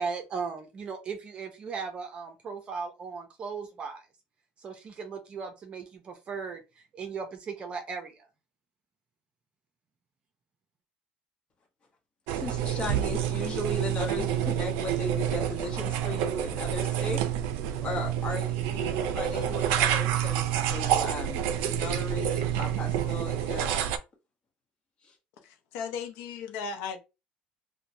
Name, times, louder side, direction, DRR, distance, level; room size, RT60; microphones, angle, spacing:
voice 1, 0.0-4.0 4.6-8.2, right 5 dB, 35° right, 0.6 m, -37 dB
voice 2, 12.3-17.2 17.8-23.8 25.0-25.1, left 2 dB, 30° left, 1.0 m, -36 dB
sound 1, 12.3-24.0, right 10 dB, 85° right, 0.4 m, -28 dB
voice 3, 25.4-27.0, left 6 dB, 80° left, 0.6 m, -36 dB
3.0 x 2.2 x 2.6 m
cardioid pair, 135°, 3 cm